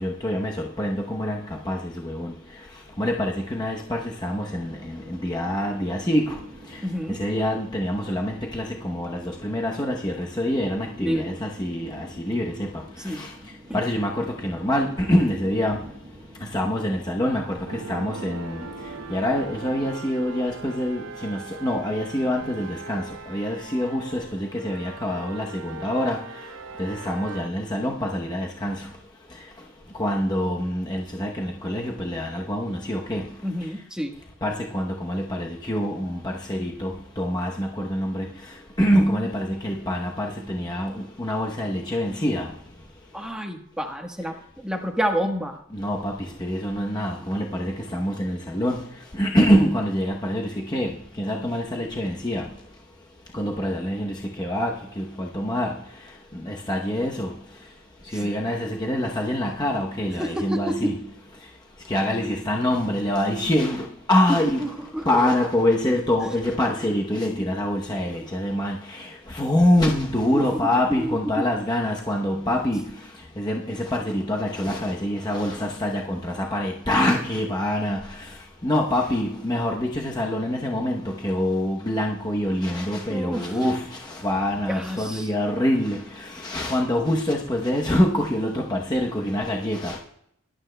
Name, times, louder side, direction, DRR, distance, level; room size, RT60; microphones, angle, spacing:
voice 1, 0.0-2.3 3.0-6.4 7.1-12.7 13.1-13.3 13.7-15.8 16.5-18.7 19.1-26.2 26.8-28.9 30.0-33.3 34.4-38.3 38.8-42.5 45.7-48.8 49.1-52.4 53.3-55.7 56.4-57.3 58.1-61.0 61.9-64.7 65.1-72.9 73.4-78.0 78.6-90.0, left 1 dB, 20° left, -1 dB, 0.8 m, -25 dB
sound 1, 4.3-19.9, equal, 30° right, 1.2 m, -47 dB
voice 2, 6.8-7.2 11.0-11.4 13.0-13.2 13.7-13.8 33.4-34.1 43.1-45.6 58.1-58.3 60.2-60.9 64.6-65.1 70.3-71.5 83.1-83.6 84.7-85.3, equal, 5° right, 2 dB, 1.2 m, -29 dB
sound 2, 17.7-27.5, right 3 dB, 70° right, 0.5 m, -40 dB
20.0 x 11.5 x 2.2 m, 0.72 s
head